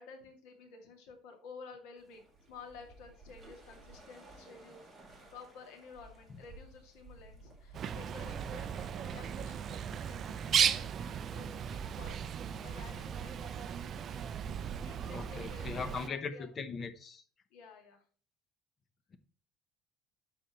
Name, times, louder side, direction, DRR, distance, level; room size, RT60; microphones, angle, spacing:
voice 1, 0.0-4.8 5.3-14.2 14.8-16.5 17.5-18.0, left 5 dB, 85° left, 2.1 m, -52 dB
sound 1, 2.0-15.7, right 1 dB, 10° right, 1.8 m, -57 dB
Bird, 7.7-16.1, right 8 dB, 35° right, 0.4 m, -36 dB
voice 2, 15.1-17.2, left 5 dB, 30° left, 0.7 m, -39 dB
12.0 x 4.3 x 2.9 m
cardioid pair, 160°, 0 cm